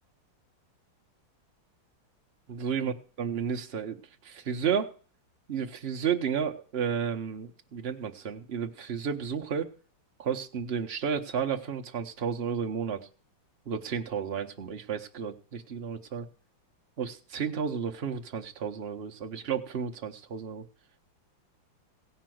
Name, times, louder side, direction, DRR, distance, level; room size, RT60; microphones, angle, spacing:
voice 1, 2.5-2.9 3.2-4.9 5.5-9.7 10.2-13.1 13.7-16.3 17.0-20.6, right 7 dB, 55° right, 4 dB, 0.7 m, -32 dB
16.5 x 5.6 x 7.7 m, 0.41 s
omnidirectional pair, 2.2 m